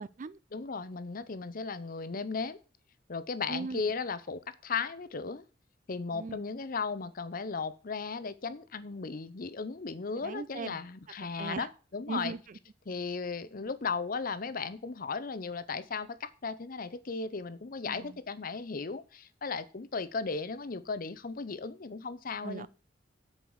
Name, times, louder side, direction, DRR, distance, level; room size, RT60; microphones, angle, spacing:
voice 1, 0.0-0.4 3.5-3.8 6.1-6.4 10.2-10.8 11.4-11.7 12.1-12.4 17.9-18.2 22.4-22.7, right 4 dB, 45° right, 0.4 m, -38 dB
voice 2, 0.5-2.6 3.1-5.4 5.9-12.3 12.9-22.7, left 4 dB, 50° left, 0.7 m, -36 dB
7.5 x 4.8 x 7.0 m
head